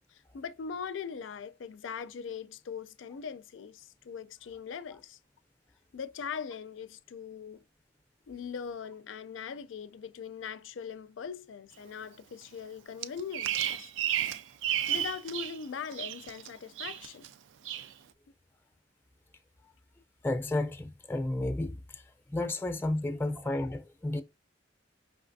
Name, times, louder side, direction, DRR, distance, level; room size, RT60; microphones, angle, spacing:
voice 1, 0.1-5.2 5.9-7.6 8.3-13.9 14.7-17.3, left 6 dB, 85° left, 0.4 m, -41 dB
Bird vocalization bird call bird song, 13.0-15.6 15.9-16.5 16.8-17.3 17.6-17.9, right 11 dB, 80° right, 0.3 m, -32 dB
voice 2, 20.2-22.0 22.3-24.2, left 2 dB, 10° left, 0.5 m, -32 dB
5.1 x 3.2 x 2.6 m
head